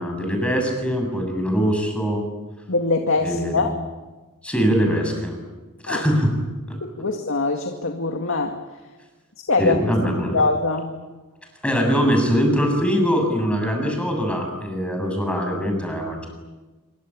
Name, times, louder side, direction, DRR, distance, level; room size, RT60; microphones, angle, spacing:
voice 1, 0.0-2.2 3.2-3.6 4.4-5.4 5.8-6.3 9.6-10.4 11.6-16.3, equal, 5° left, 3 dB, 7.3 m, -22 dB
voice 2, 2.7-3.7 5.9-6.0 6.7-8.6 9.5-9.8 10.3-10.9, left 3 dB, 65° left, 4 dB, 2.3 m, -23 dB
26.5 x 24.5 x 8.9 m, 1.2 s
head